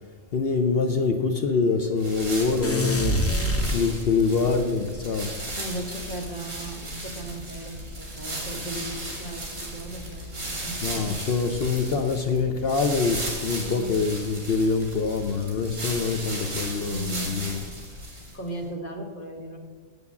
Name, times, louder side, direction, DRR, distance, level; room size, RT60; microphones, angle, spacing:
voice 1, 0.3-3.2 3.7-5.3 10.8-17.6, left 4 dB, 55° left, 0.8 m, -25 dB
sound 1, 2.0-18.5, right 1 dB, 65° right, 2.8 m, -35 dB
sound 2, 2.6-4.4, equal, 15° left, 0.5 m, -25 dB
voice 2, 3.2-3.7 5.3-11.1 13.6-14.0 16.9-17.6 18.3-19.6, right 1 dB, 40° left, 1.5 m, -37 dB
8.1 x 7.0 x 7.0 m
omnidirectional pair, 1.4 m